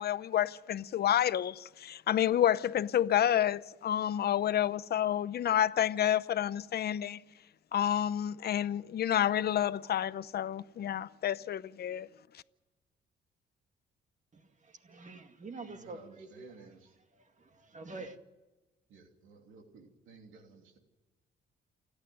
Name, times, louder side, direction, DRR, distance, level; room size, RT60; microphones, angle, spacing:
voice 1, 0.0-7.2 7.7-12.1, left 10 dB, 55° left, 0.7 m, -29 dB
voice 2, 14.3-16.5 17.2-18.2, right 3 dB, 40° right, 2.1 m, -47 dB
voice 3, 15.6-17.0 18.9-20.8, right 5 dB, 85° right, 3.0 m, -55 dB
29.0 x 9.9 x 9.4 m
cardioid pair, 90°, 20 cm